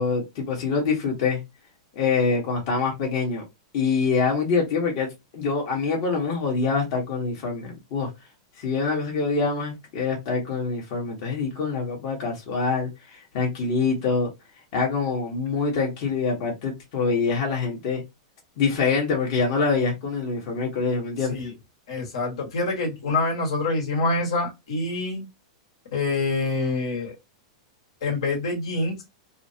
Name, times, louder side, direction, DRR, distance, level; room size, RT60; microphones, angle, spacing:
voice 1, 0.0-1.4 1.9-3.4 3.7-8.1 8.6-14.3 14.7-18.0 18.6-21.5, left 4 dB, 55° left, 1.1 m, -25 dB
voice 2, 21.9-25.2 25.9-27.2 28.0-29.0, left 3 dB, 80° left, 1.4 m, -26 dB
3.1 x 2.0 x 2.7 m
hypercardioid pair, 125°, 3 cm